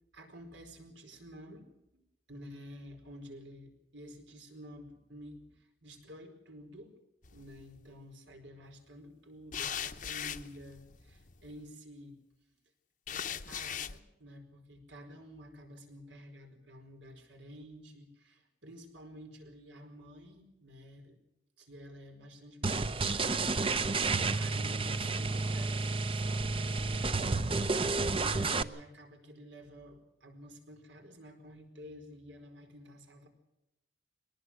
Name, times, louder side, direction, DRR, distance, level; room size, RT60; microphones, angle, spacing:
voice 1, 0.1-2.0 2.3-6.9 7.3-12.2 13.1-21.2 21.6-27.7 28.1-33.3, equal, 85° right, 5 dB, 4.7 m, -51 dB
sound 1, 7.2-7.8 9.5-11.5 13.1-14.0, left 9 dB, 45° left, 0.8 m, -39 dB
sound 2, 22.6-28.6, right 3 dB, 30° right, 0.7 m, -31 dB
23.0 x 19.0 x 6.4 m, 0.87 s
head